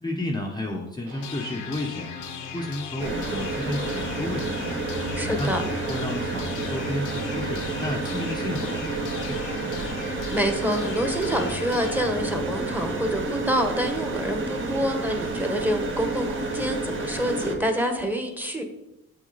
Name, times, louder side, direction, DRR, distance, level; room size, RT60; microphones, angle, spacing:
voice 1, 0.0-2.1 2.5-4.8 5.3-9.7, left 1 dB, 15° left, -1 dB, 1.0 m, -32 dB
sound 1, 1.0-10.7, right 5 dB, 75° right, 2.1 m, -43 dB
sound 2, 1.2-13.2, left 7 dB, 90° left, 0.9 m, -38 dB
sound 3, 3.0-17.6, right 3 dB, 40° right, 1.7 m, -30 dB
voice 2, 5.1-5.6 10.1-18.6, equal, 5° right, 5 dB, 1.4 m, -27 dB
7.6 x 6.3 x 4.1 m, 0.92 s
cardioid pair, 90°, 30 cm